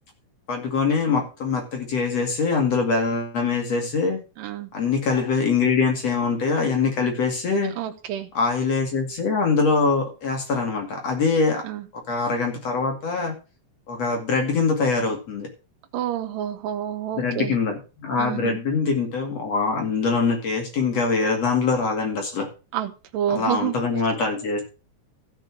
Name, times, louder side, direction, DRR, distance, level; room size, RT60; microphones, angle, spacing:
voice 1, 0.5-4.2 4.7-7.7 8.3-11.6 12.1-13.3 13.9-15.5 17.1-22.5 23.3-24.6, left 4 dB, 50° left, 3 dB, 3.2 m, -23 dB
voice 2, 4.4-4.7 7.8-8.3 11.6-11.8 15.9-17.5 18.2-18.6 22.7-23.8, right 10 dB, 85° right, 4 dB, 2.6 m, -28 dB
15.0 x 5.5 x 6.0 m, 0.32 s
omnidirectional pair, 3.8 m